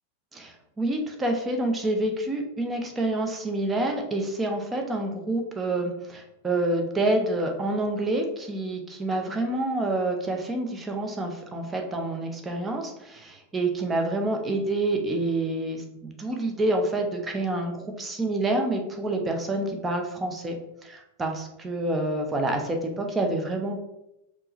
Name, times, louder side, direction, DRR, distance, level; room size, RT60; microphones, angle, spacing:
voice 1, 0.3-20.6 20.8-23.9, right 2 dB, 15° right, 3 dB, 0.7 m, -28 dB
4.6 x 2.5 x 3.0 m, 0.86 s
figure-of-eight pair, 90°, 0 cm